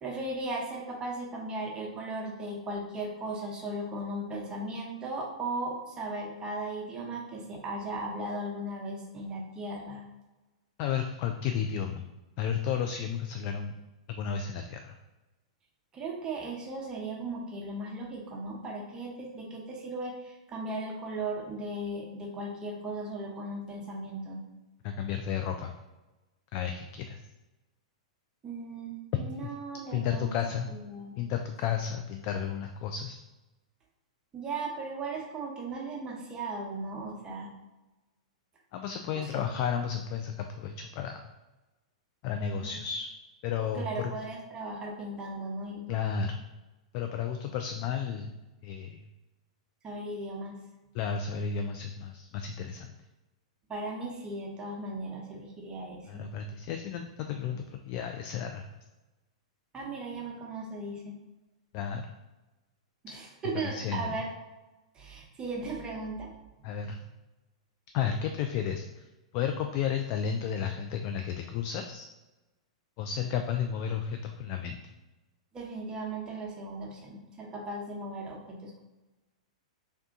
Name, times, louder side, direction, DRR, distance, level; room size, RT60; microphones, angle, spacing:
voice 1, 0.0-10.0 15.9-24.4 28.4-30.3 30.6-31.1 34.3-37.5 39.2-39.4 43.7-46.0 49.8-50.5 53.7-56.2 59.7-61.2 63.0-64.3 64.9-66.3 66.9-67.1 75.5-78.8, right 2 dB, 25° right, -1 dB, 0.9 m, -37 dB
voice 2, 10.8-12.1 12.4-13.7 14.1-15.0 24.8-25.7 26.5-27.2 29.3-29.5 29.9-30.7 31.2-33.2 38.7-41.2 42.2-43.1 43.4-44.1 45.9-46.4 46.9-48.3 48.6-49.0 50.9-52.9 56.1-58.6 61.7-62.1 63.5-64.2 66.6-67.0 67.9-69.0 69.3-72.1 73.0-74.8, left 7 dB, 45° left, 5 dB, 0.3 m, -32 dB
3.4 x 2.7 x 3.7 m, 1.1 s
hypercardioid pair, 115°, 4 cm